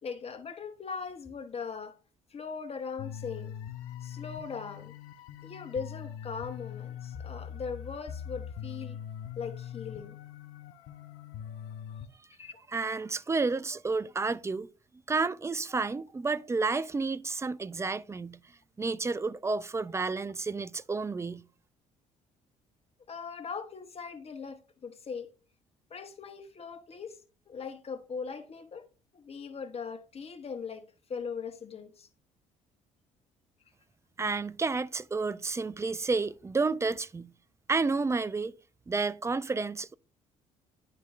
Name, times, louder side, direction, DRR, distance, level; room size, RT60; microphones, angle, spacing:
voice 1, 0.0-2.0 2.3-3.5 4.0-4.9 5.4-9.0 9.4-10.2 12.4-12.6 23.1-25.3 25.9-27.2 27.5-28.9 29.1-30.8 31.1-32.1, left 5 dB, 35° left, 1.0 m, -40 dB
sound 1, 3.0-12.1, left 9 dB, 70° left, 0.6 m, -42 dB
voice 2, 12.7-14.7 15.1-18.4 18.8-21.4 34.2-37.3 37.7-38.5 38.9-39.9, right 4 dB, 15° right, 0.4 m, -30 dB
11.0 x 3.9 x 2.4 m
hypercardioid pair, 50°, 17 cm